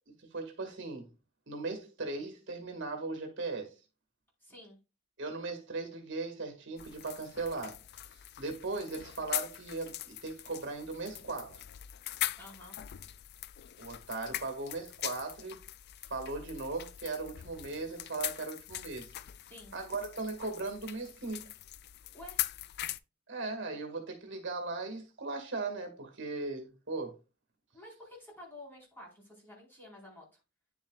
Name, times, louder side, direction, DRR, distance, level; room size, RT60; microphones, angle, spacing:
voice 1, 0.1-1.1 1.5-3.7 5.2-7.8 8.4-11.6 13.8-15.6 16.1-19.1 19.7-21.5 23.3-27.2, right 3 dB, 65° right, 2.0 m, -38 dB
voice 2, 4.4-4.8 12.4-12.8 19.5-19.8 22.1-22.4 27.7-30.4, left 1 dB, 10° left, 4.5 m, -51 dB
sound 1, 6.8-23.0, left 14 dB, 55° left, 0.3 m, -41 dB
10.0 x 7.2 x 2.4 m
head